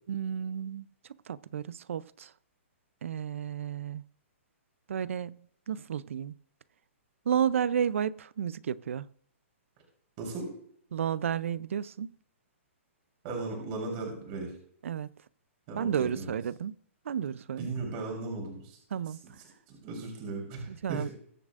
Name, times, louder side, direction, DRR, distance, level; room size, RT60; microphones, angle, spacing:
voice 1, 0.1-0.9 1.3-2.3 3.0-4.0 4.9-6.3 7.3-9.1 10.9-12.1 14.8-15.1 15.7-16.8 17.0-17.7 18.9-19.2 20.7-21.1, right 8 dB, 75° right, 0.5 m, -32 dB
voice 2, 10.2-10.5 13.2-14.5 15.7-16.3 17.6-18.8 19.2-19.3 19.7-21.1, right 3 dB, 40° right, 3.6 m, -36 dB
21.5 x 7.3 x 2.5 m
hypercardioid pair, 140°, 7 cm